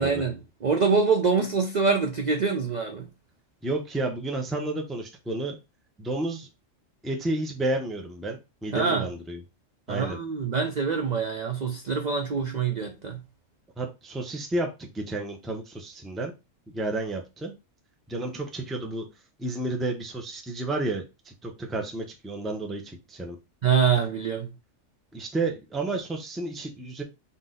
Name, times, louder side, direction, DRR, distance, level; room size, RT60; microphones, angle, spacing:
voice 1, 0.0-3.1 8.7-9.1 9.9-13.2 23.6-24.5, right 5 dB, 50° right, 0.5 m, -25 dB
voice 2, 3.6-5.6 6.0-6.5 7.0-9.4 9.9-10.2 13.8-16.3 16.7-17.5 18.1-19.1 19.4-23.4 25.1-27.0, right 2 dB, ahead, 0.5 m, -31 dB
4.1 x 2.8 x 3.7 m
omnidirectional pair, 1.4 m